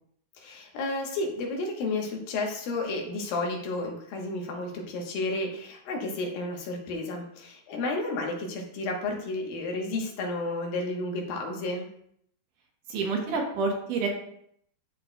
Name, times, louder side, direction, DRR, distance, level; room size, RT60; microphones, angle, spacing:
voice 1, 0.4-11.9, left 2 dB, 80° left, 1 dB, 2.8 m, -32 dB
voice 2, 12.9-14.1, right 4 dB, 70° right, 0 dB, 2.4 m, -28 dB
12.5 x 4.2 x 2.2 m, 0.68 s
omnidirectional pair, 4.1 m